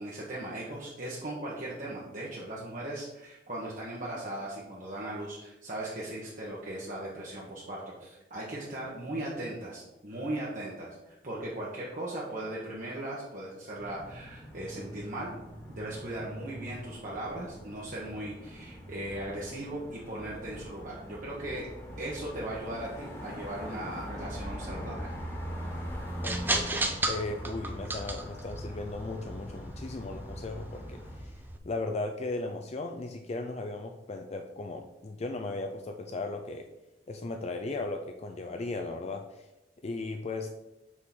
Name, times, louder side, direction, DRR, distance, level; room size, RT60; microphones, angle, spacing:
voice 1, 0.0-15.3 15.7-21.7 22.0-25.1, right 1 dB, 45° right, -5 dB, 1.2 m, -38 dB
sound 1, 13.8-31.2, equal, 15° left, 1.5 m, -43 dB
sound 2, 24.2-31.6, right 2 dB, 10° right, 0.6 m, -36 dB
voice 2, 26.2-31.3 31.6-36.7 37.1-39.5 39.8-40.5, left 2 dB, 35° left, 5 dB, 0.4 m, -36 dB
6.2 x 3.8 x 6.0 m, 0.96 s
head